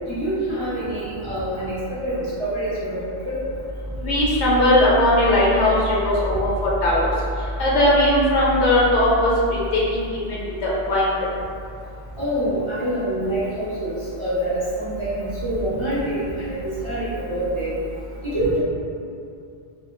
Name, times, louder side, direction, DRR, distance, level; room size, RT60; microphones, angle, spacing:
voice 1, 0.1-1.7 2.0-3.4 12.2-13.9 14.2-17.7 18.2-18.6, right 1 dB, 40° right, -11 dB, 0.4 m, -26 dB
voice 2, 4.0-7.1 7.6-9.3 9.7-11.2, left 1 dB, 85° left, -6 dB, 0.9 m, -19 dB
2.1 x 2.1 x 2.9 m, 2.4 s
omnidirectional pair, 1.1 m